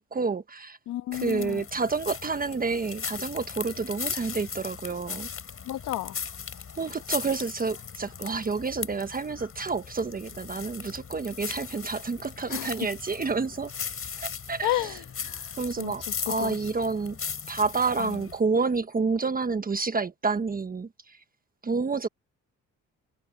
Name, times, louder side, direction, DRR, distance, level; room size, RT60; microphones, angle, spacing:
voice 1, 0.0-0.8 1.1-5.3 6.8-13.7 14.2-14.9 15.6-17.2 17.5-20.9 21.6-22.1, right 4 dB, 30° right, 1.2 m, -29 dB
voice 2, 0.9-1.6 5.6-6.2 12.5-12.7 14.6-15.5 15.8-16.6 18.0-18.3, left 15 dB, 90° left, 1.6 m, -32 dB
sound 1, 1.1-18.4, left 6 dB, 45° left, 7.3 m, -38 dB
cardioid pair, 90°, 30 cm